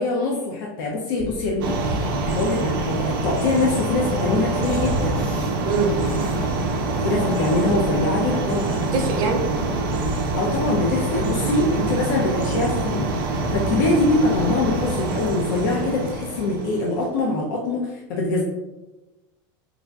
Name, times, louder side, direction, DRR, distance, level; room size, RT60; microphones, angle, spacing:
voice 1, 0.0-5.3 6.7-8.7 10.3-18.4, left 2 dB, 75° left, -2 dB, 0.5 m, -24 dB
Train, 1.2-11.6, equal, 10° left, 0.5 m, -34 dB
sound 1, 1.6-17.1, right 2 dB, 85° right, 0.5 m, -25 dB
voice 2, 5.6-5.9 8.8-9.4, right 4 dB, 35° right, 2 dB, 0.5 m, -23 dB
3.3 x 2.5 x 2.3 m, 1.1 s
supercardioid pair, 165°, 11 cm